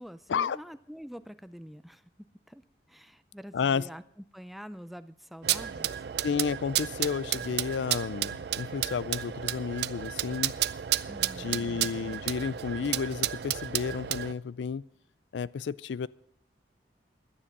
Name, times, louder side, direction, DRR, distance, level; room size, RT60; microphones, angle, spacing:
voice 1, 0.0-2.1 2.5-6.1 11.1-11.8, equal, ahead, 12 dB, 0.4 m, -46 dB
voice 2, 3.5-3.9 6.2-10.5 11.4-14.8 15.3-16.1, left 6 dB, 85° left, 20 dB, 0.4 m, -31 dB
sound 1, 5.4-14.3, right 12 dB, 65° right, 0.4 m, -32 dB
11.5 x 9.8 x 6.6 m, 0.68 s
head